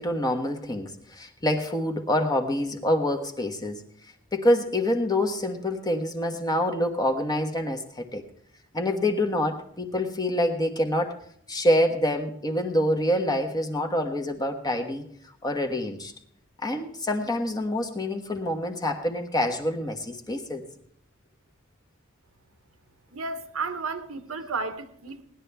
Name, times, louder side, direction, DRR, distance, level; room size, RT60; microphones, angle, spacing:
voice 1, 0.0-3.8 4.3-8.2 8.7-11.2 11.5-15.0 15.4-16.1 16.6-20.6, left 1 dB, 20° left, 1.2 m, -26 dB
voice 2, 23.1-25.2, right 4 dB, 85° right, 1.1 m, -33 dB
18.5 x 11.0 x 3.4 m
head